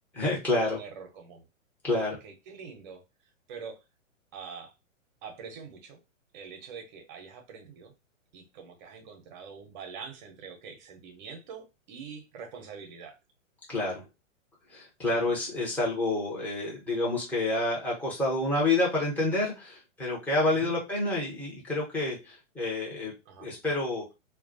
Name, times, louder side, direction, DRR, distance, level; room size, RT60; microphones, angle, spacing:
voice 1, 0.1-0.8 1.8-2.2 13.7-14.1 14.7-23.1 23.4-24.0, left 2 dB, 5° left, 0.8 m, -28 dB
voice 2, 0.6-1.4 1.9-3.0 3.5-3.8 4.3-4.7 5.2-6.0 6.3-7.9 8.3-13.1 15.1-15.7 20.5-20.7 23.3-23.5, right 6 dB, 35° right, 0.7 m, -45 dB
2.2 x 2.2 x 2.6 m
figure-of-eight pair, 115°, 40 cm